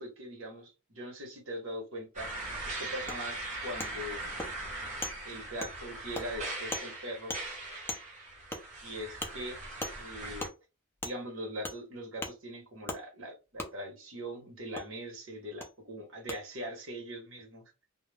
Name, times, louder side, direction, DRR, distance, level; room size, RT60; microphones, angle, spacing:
voice 1, 0.0-2.3 2.6-4.3 5.2-7.3 8.8-9.6 10.0-10.5 11.0-17.7, equal, 60° right, 1.0 m, -41 dB
sound 1, 2.1-10.5, right 2 dB, 35° right, 1.0 m, -40 dB
Wood, 3.1-3.2 3.8-3.9 4.4-4.5 5.0-5.1 5.6-5.7 6.1-6.3 6.7-6.9 7.3-7.4 7.9-8.0 8.5-8.6 9.2-9.3 9.8-9.9 10.4-10.5 11.0-11.1 11.6-11.8 12.2-12.3 12.9-13.0 13.6-13.7 14.7-14.9 15.6-15.7 16.3-16.4, left 1 dB, 10° left, 0.3 m, -37 dB
2.2 x 2.0 x 3.2 m
head